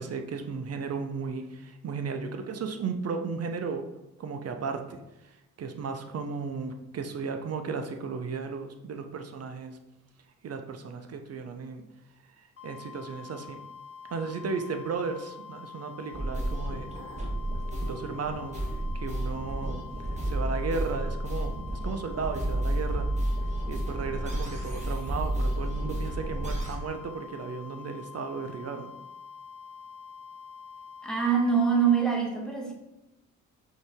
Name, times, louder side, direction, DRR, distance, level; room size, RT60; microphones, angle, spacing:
voice 1, 0.0-3.9 4.2-5.0 5.2-5.3 5.6-9.8 10.4-11.8 12.6-13.6 14.1-16.9 17.8-18.6 18.9-19.8 20.2-21.5 21.8-23.1 23.7-28.9, right 5 dB, 40° right, 6 dB, 0.6 m, -35 dB
sound 1, 12.6-32.1, left 6 dB, 35° left, 1.1 m, -46 dB
sound 2, 16.1-26.8, right 1 dB, 20° right, 1.3 m, -31 dB
voice 2, 31.0-32.7, right 6 dB, ahead, -1 dB, 1.3 m, -24 dB
5.2 x 2.8 x 3.5 m, 0.93 s
hypercardioid pair, 50°, 39 cm